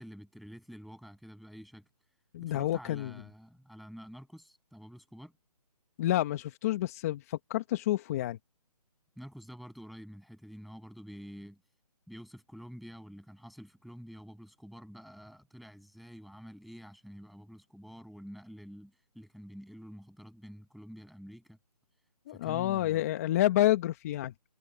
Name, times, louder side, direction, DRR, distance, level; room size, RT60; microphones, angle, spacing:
voice 1, 0.0-1.9 2.4-5.3 9.2-11.6 12.1-21.6 22.3-23.0, equal, ahead, 7.6 m, -48 dB
voice 2, 2.3-3.1 6.0-8.4 22.3-24.3, left 14 dB, 25° left, 1.3 m, -29 dB
hypercardioid pair, 160°, 21 cm